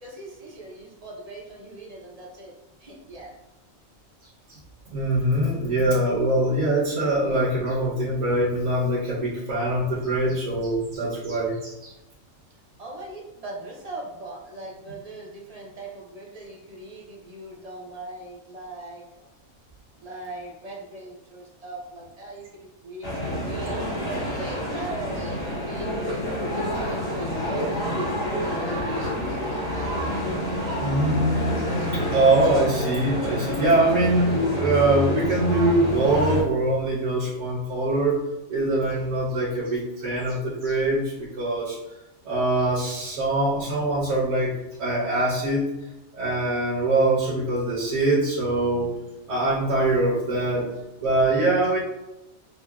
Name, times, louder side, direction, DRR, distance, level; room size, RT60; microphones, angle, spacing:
voice 1, 0.0-2.5 2.8-3.3 12.8-19.0 20.0-23.9 24.4-30.1, right 2 dB, 45° right, -2 dB, 0.5 m, -41 dB
voice 2, 4.9-11.9 30.8-38.2 38.5-41.8 42.2-44.5 44.8-45.7 46.1-48.9 49.3-50.7 51.0-51.8, right 2 dB, 65° right, -7 dB, 1.1 m, -23 dB
sound 1, 23.0-36.4, equal, 70° left, 2.0 m, -28 dB
5.3 x 2.1 x 2.2 m, 0.94 s
omnidirectional pair, 1.4 m